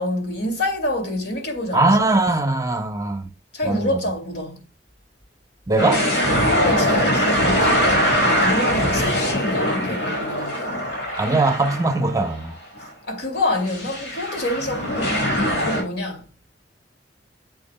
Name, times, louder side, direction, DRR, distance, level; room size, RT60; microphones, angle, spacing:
voice 1, 0.0-2.0 3.5-4.6 6.3-7.8 8.2-10.7 13.1-15.2 15.6-16.2, left 1 dB, 65° left, 2.5 m, -27 dB
voice 2, 1.7-3.2 3.6-4.0 5.7-6.1 11.2-12.6, right 2 dB, 20° right, 0.7 m, -20 dB
sound 1, 5.8-12.3 12.8-12.9 13.7-15.8, equal, 90° left, 4.3 m, -22 dB
8.5 x 7.4 x 2.2 m
head